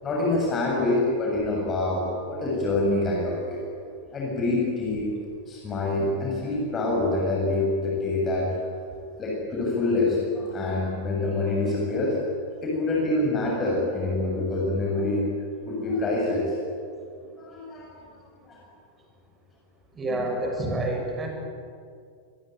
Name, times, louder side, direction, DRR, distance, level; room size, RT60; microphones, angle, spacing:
voice 1, 0.0-3.6 4.1-5.1 5.5-8.5 9.2-12.2 12.6-15.2 15.6-16.5 17.4-18.0 18.4-18.6 20.2-20.3, left 2 dB, 25° left, -3 dB, 7.6 m, -26 dB
voice 2, 19.9-21.3, right 1 dB, 20° right, 3 dB, 7.3 m, -28 dB
26.0 x 22.5 x 9.3 m, 2.3 s
figure-of-eight pair, 90°, 0 cm